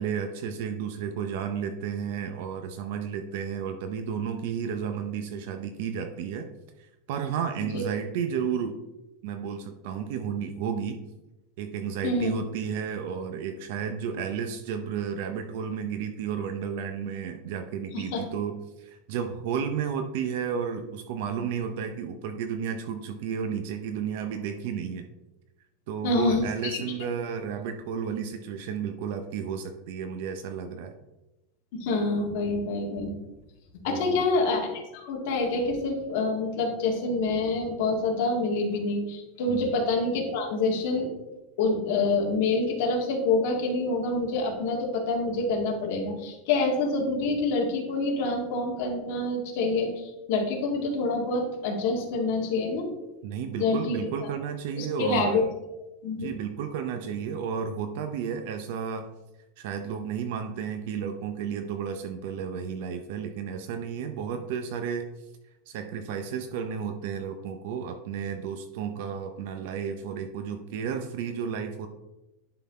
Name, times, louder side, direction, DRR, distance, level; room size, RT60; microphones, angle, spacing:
voice 1, 0.0-6.5 6.8-8.8 9.2-11.0 11.6-25.1 25.9-30.9 33.9-34.3 39.5-39.7 53.2-55.5 56.2-59.1 59.6-65.3 65.7-71.9, right 7 dB, 55° right, 6 dB, 0.6 m, -32 dB
voice 2, 26.0-26.8 31.8-33.1 33.8-41.1 41.6-52.9 53.6-54.3 54.8-55.4 56.0-56.3, left 3 dB, 50° left, 0 dB, 1.9 m, -27 dB
11.0 x 3.9 x 4.2 m, 0.97 s
supercardioid pair, 175°, 0 cm